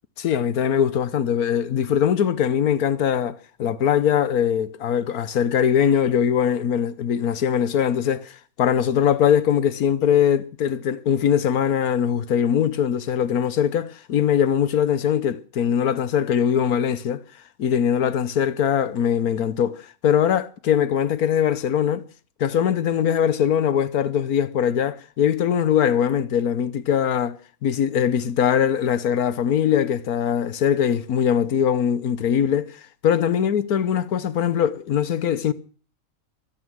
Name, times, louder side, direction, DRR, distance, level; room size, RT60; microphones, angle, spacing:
voice 1, 0.2-17.2 17.6-22.0 22.4-32.7 33.0-35.5, left 8 dB, 85° left, 1.5 m, -21 dB
23.5 x 9.4 x 6.3 m
omnidirectional pair, 1.5 m